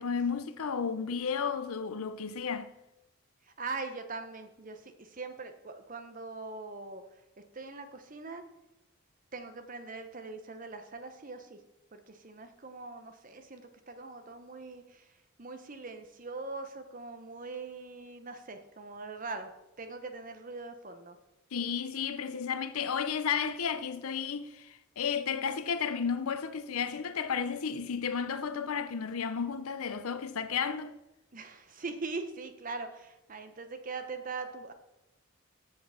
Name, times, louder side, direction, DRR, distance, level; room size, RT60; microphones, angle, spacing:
voice 1, 0.0-2.7 21.5-30.9, left 6 dB, 80° left, 0.6 m, -33 dB
voice 2, 3.4-7.0 7.5-8.4 9.3-11.6 11.9-15.1 15.4-19.5 19.8-21.2 31.3-34.7, right 3 dB, 40° right, 0.8 m, -42 dB
7.4 x 5.9 x 6.3 m
head